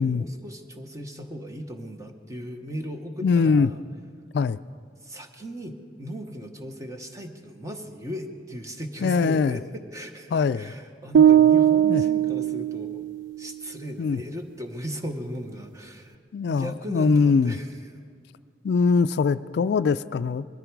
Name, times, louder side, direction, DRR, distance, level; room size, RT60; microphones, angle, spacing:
voice 1, 0.0-3.8 5.0-13.0 13.4-17.7, equal, 20° right, 5 dB, 1.0 m, -37 dB
voice 2, 3.2-3.7 4.3-4.6 9.0-9.6 10.3-10.7 11.9-12.0 14.0-14.2 16.3-17.5 18.6-20.4, left 5 dB, 65° left, 15 dB, 0.3 m, -22 dB
sound 1, 11.1-13.3, right 10 dB, 80° right, 0.3 m, -19 dB
20.5 x 14.0 x 4.7 m, 2.2 s
head